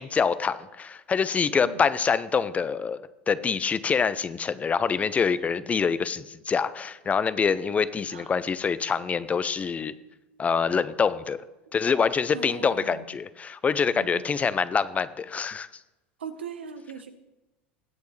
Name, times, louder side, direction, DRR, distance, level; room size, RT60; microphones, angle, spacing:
voice 1, 0.0-3.0 3.3-9.9 10.4-11.4 11.7-15.7, left 6 dB, 25° left, 15 dB, 0.6 m, -25 dB
voice 2, 7.8-8.3 12.3-13.0 13.9-14.2 16.2-17.1, right 7 dB, 90° right, 8 dB, 1.1 m, -40 dB
20.0 x 8.2 x 3.2 m, 1.0 s
hypercardioid pair, 90°, 6 cm